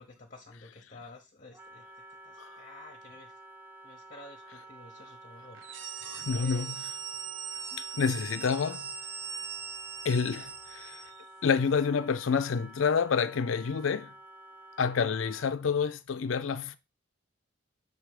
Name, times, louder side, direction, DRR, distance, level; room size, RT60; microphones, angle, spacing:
voice 1, 0.0-3.4 3.8-6.8, left 3 dB, 40° left, 0.9 m, -52 dB
Wind instrument woodwind instrument, 1.5-15.6, right 1 dB, 10° right, 0.5 m, -51 dB
sound 1, 5.5-11.2, right 7 dB, 65° right, 0.8 m, -40 dB
voice 2, 6.0-6.7 7.7-8.9 10.0-11.0 11.4-14.1 14.8-16.8, left 6 dB, 75° left, 0.4 m, -28 dB
6.6 x 3.4 x 4.8 m
head